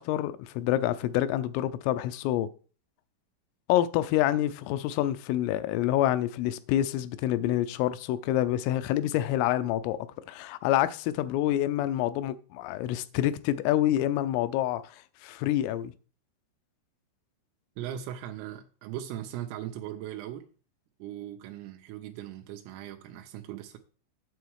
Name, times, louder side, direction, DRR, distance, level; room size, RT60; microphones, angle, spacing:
voice 1, 0.0-2.5 3.7-10.0 10.3-15.0 15.2-15.9, left 13 dB, 85° left, 3.3 m, -27 dB
voice 2, 17.8-20.5 21.0-23.8, right 11 dB, 85° right, 3.4 m, -39 dB
9.1 x 7.2 x 4.7 m
omnidirectional pair, 5.9 m